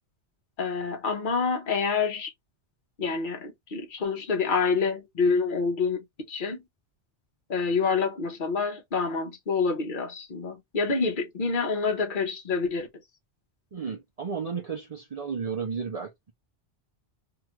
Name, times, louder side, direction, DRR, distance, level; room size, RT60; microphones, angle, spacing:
voice 1, 0.6-2.3 3.0-6.6 7.5-12.9, left 4 dB, 50° left, 1.0 m, -27 dB
voice 2, 13.7-16.3, right 6 dB, 45° right, 0.5 m, -33 dB
2.9 x 2.4 x 2.9 m
omnidirectional pair, 1.2 m